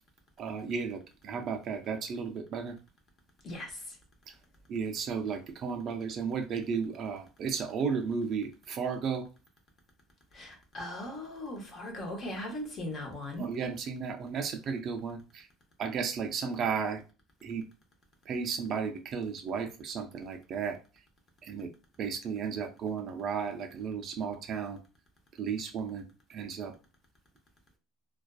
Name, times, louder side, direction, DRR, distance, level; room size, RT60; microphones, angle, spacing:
voice 1, 0.4-1.0 1.2-2.7 4.7-9.2 13.4-15.4 15.8-17.0 17.4-17.6 18.3-20.7 21.5-21.7 22.0-24.8 25.4-26.0 26.3-26.7, right 6 dB, 35° right, 0.3 m, -34 dB
voice 2, 10.3-13.5, left 1 dB, 30° left, 0.7 m, -39 dB
2.4 x 2.2 x 2.3 m
cardioid pair, 160°, 0 cm